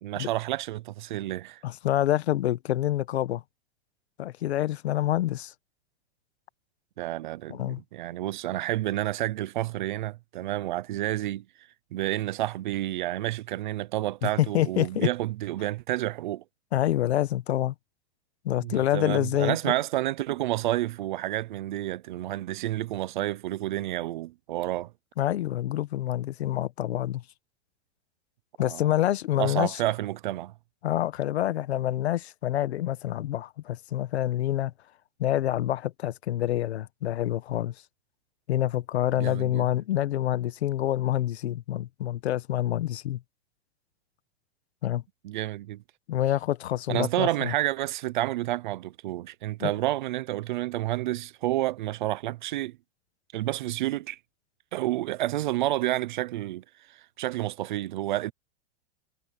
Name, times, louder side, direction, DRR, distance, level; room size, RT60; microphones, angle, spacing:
voice 1, 0.0-1.6 7.0-11.4 11.9-16.4 18.6-24.9 28.6-28.8 29.4-30.5 39.2-39.7 45.2-45.8 46.9-52.8 53.3-54.2 54.7-58.3, right 15 dB, 50° right, 0.7 m, -30 dB
voice 2, 1.6-3.4 4.2-5.5 7.5-7.8 14.2-15.1 16.7-17.7 18.4-19.6 25.2-27.2 28.6-29.8 30.8-34.7 35.2-37.7 38.5-43.2 44.8-45.0 46.1-47.5 49.6-49.7, left 13 dB, 90° left, 1.3 m, -27 dB
supercardioid pair, 175°, 31 cm